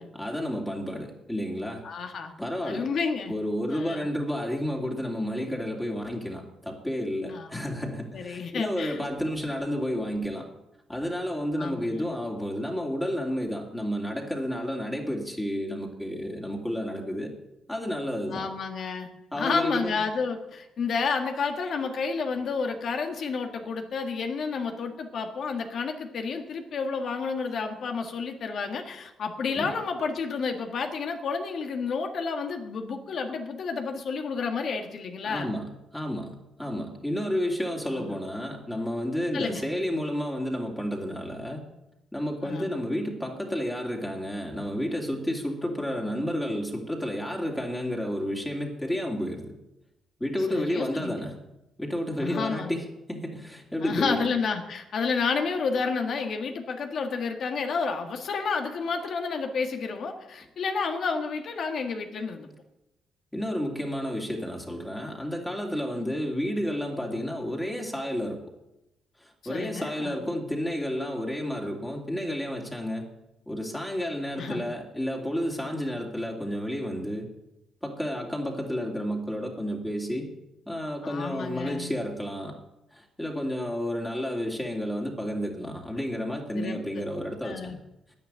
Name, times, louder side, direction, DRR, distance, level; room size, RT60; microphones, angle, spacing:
voice 1, 0.0-1.8 2.4-2.9 3.3-10.5 10.9-17.3 17.7-18.5 19.3-20.0 29.5-29.7 35.2-41.6 42.1-49.5 50.2-51.4 51.8-54.3 63.3-68.4 69.2-73.1 73.5-77.3 77.8-80.3 80.7-82.5 82.9-87.8, equal, 5° left, -1 dB, 2.5 m, -31 dB
voice 2, 1.8-2.3 2.6-3.3 3.7-4.1 7.3-7.7 8.1-9.0 11.6-12.1 18.3-19.1 19.3-35.5 37.9-38.1 39.3-39.7 42.4-42.7 50.5-51.2 52.2-52.8 53.8-62.5 69.4-70.2 74.4-74.6 81.0-81.9 86.5-86.8 87.4-87.8, left 5 dB, 60° left, 4 dB, 1.7 m, -30 dB
10.5 x 9.4 x 8.8 m, 0.91 s
cardioid pair, 90°, 0 cm